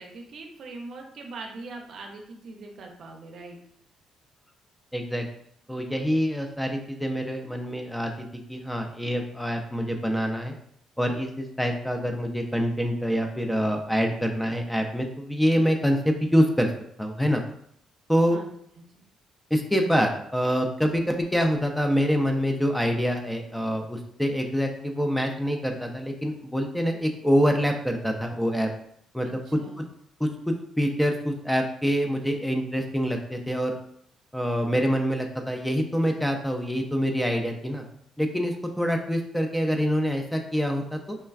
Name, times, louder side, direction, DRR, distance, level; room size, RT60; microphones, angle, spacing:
voice 1, 0.0-3.6 18.3-18.5 18.8-19.0 29.2-29.8, right 3 dB, 65° right, 2 dB, 0.5 m, -42 dB
voice 2, 4.9-5.2 5.7-8.1 8.5-10.6 11.0-16.7 17.0-17.4 18.1-18.4 19.5-28.7 29.1-29.8 30.2-33.8 34.3-37.8 38.2-41.2, equal, 5° left, 4 dB, 0.4 m, -25 dB
3.2 x 2.2 x 2.3 m, 0.69 s
cardioid pair, 90°, 0 cm